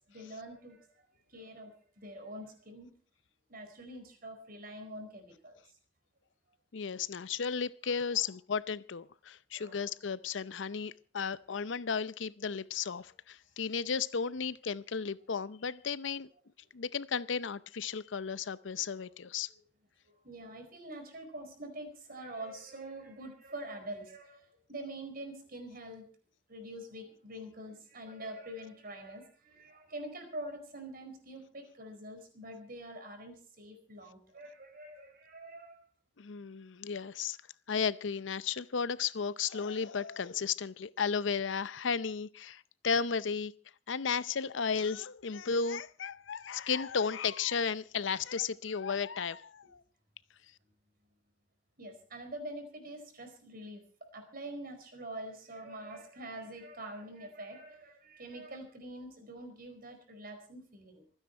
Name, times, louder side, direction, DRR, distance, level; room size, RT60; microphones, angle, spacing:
voice 1, 0.1-2.9 3.5-5.6 8.1-8.3 9.5-9.9 19.5-19.6 20.2-26.1 26.5-35.8 51.8-53.8 54.1-61.0, right 1 dB, 50° right, 4.6 m, -45 dB
voice 2, 6.7-16.3 16.7-19.5 36.2-37.4 37.7-43.5 43.9-49.8, left 6 dB, 75° left, 0.6 m, -34 dB
25.5 x 9.9 x 4.4 m
head